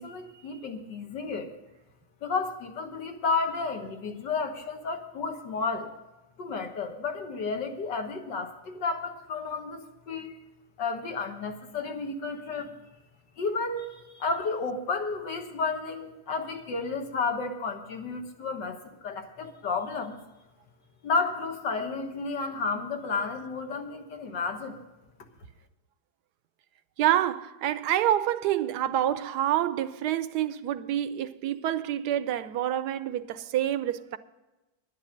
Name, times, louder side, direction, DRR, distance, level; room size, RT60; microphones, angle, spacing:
voice 1, 0.0-1.5 2.2-5.9 6.4-10.4 10.8-12.8 13.4-20.2 21.0-24.8, left 4 dB, 80° left, 2.0 m, -32 dB
voice 2, 27.0-34.2, right 12 dB, 75° right, 1.1 m, -27 dB
10.5 x 10.5 x 6.5 m
omnidirectional pair, 1.9 m